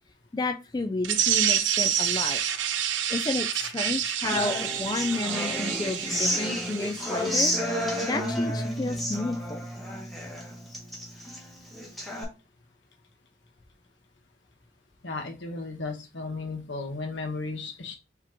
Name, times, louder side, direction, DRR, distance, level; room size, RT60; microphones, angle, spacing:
voice 1, 0.3-2.4 3.1-7.5 8.0-9.7, left 2 dB, 20° left, 6 dB, 0.3 m, -31 dB
sound 1, 1.0-7.5, right 9 dB, 80° right, 0.6 m, -28 dB
Human voice / Acoustic guitar, 4.2-12.2, equal, ahead, 1.2 m, -31 dB
voice 2, 15.0-17.9, left 3 dB, 75° left, 4 dB, 1.1 m, -34 dB
4.7 x 3.0 x 3.5 m, 0.29 s
head